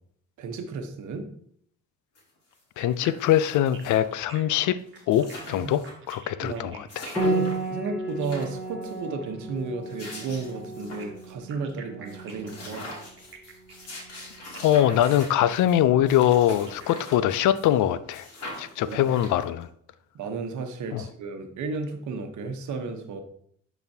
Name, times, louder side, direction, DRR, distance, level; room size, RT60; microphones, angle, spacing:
voice 1, 0.4-1.2 5.5-5.7 6.4-6.9 7.2-12.9 18.5-19.1 20.1-23.2, right 4 dB, 75° right, 5 dB, 1.1 m, -33 dB
sound 1, 2.1-2.2 2.5-4.2 4.6-4.7 4.9-6.1 6.5-6.6 6.9-7.7 8.1-9.0 9.7-11.3 11.7-11.8 12.1-17.8 18.1-19.6, left 1 dB, 55° left, 2.6 m, -43 dB
voice 2, 2.8-4.8 5.1-7.0 14.6-18.3 18.6-19.7 20.9-21.0, left 11 dB, 80° left, 15 dB, 0.5 m, -23 dB
sound 2, 2.8-9.6 10.8-17.5, right 6 dB, 40° right, 1.3 m, -49 dB
Piano, 7.2-16.5, right 2 dB, 5° right, 1.6 m, -34 dB
10.5 x 4.2 x 2.8 m, 0.67 s
cardioid pair, 90°, 30 cm